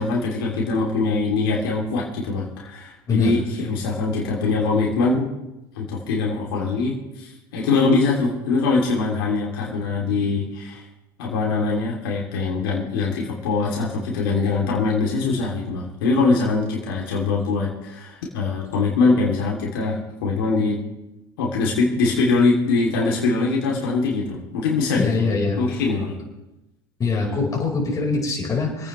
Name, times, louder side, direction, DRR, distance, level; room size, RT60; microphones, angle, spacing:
voice 1, 0.0-5.3 5.7-10.8 11.2-20.8 21.4-25.3 25.6-26.1 27.3-27.4, left 3 dB, 80° left, -2 dB, 3.0 m, -22 dB
voice 2, 3.1-3.4 24.9-25.6 27.0-28.9, left 4 dB, 30° left, -1 dB, 5.0 m, -23 dB
27.0 x 9.5 x 3.3 m, 0.95 s
hypercardioid pair, 85°, 12 cm